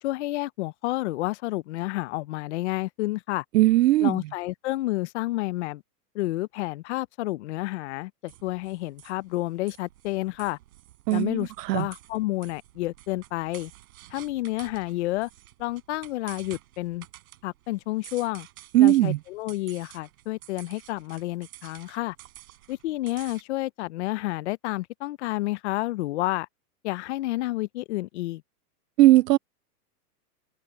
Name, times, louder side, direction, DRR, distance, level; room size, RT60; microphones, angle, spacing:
voice 1, 0.0-3.4 4.0-5.8 6.1-10.6 11.1-13.7 14.1-15.3 15.6-17.1 17.4-18.5 18.8-22.2 22.7-26.5 26.8-28.4, left 18 dB, 45° left, 0.6 m, -30 dB
voice 2, 3.5-4.2 11.1-11.9 18.7-19.2 29.0-29.4, right 16 dB, 80° right, 0.6 m, -19 dB
sound 1, 8.3-23.4, right 15 dB, 60° right, 5.2 m, -50 dB
hypercardioid pair, 150°, 49 cm